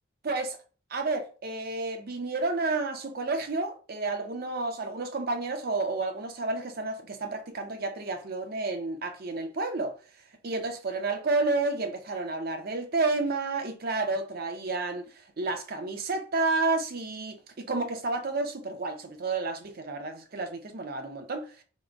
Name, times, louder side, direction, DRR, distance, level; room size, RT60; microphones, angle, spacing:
voice 1, 0.2-0.6 0.9-10.0 10.4-15.1 15.4-21.5, right 3 dB, 50° right, 0.6 m, -30 dB
3.6 x 2.1 x 3.5 m
head